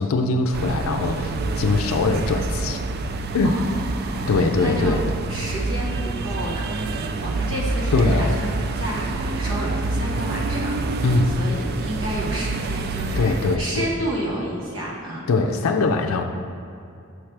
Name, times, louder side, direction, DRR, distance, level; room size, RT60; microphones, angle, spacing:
voice 1, 0.0-2.8 3.3-3.5 4.3-5.0 7.9-8.4 11.0-11.4 13.2-13.9 15.3-16.2, left 3 dB, 85° left, 4 dB, 0.4 m, -22 dB
sound 1, 0.5-13.6, right 3 dB, 50° right, 0.3 m, -27 dB
voice 2, 3.4-5.0 5.3-11.1 11.4-15.2, right 1 dB, 85° right, -4 dB, 1.4 m, -30 dB
6.2 x 3.3 x 5.8 m, 2.5 s
head